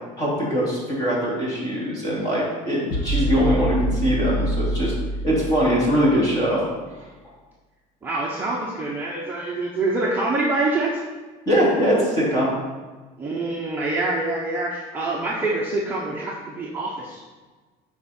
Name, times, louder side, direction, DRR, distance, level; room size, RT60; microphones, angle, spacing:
voice 1, 0.2-4.9 5.2-6.6 11.5-12.5, equal, 25° left, -6 dB, 3.0 m, -22 dB
sound 1, 2.9-6.3, right 1 dB, 55° left, 1.6 m, -26 dB
voice 2, 8.0-11.0 13.2-17.2, right 2 dB, 10° right, -5 dB, 0.8 m, -25 dB
13.5 x 4.8 x 4.4 m, 1.3 s
cardioid pair, 180°, 17 cm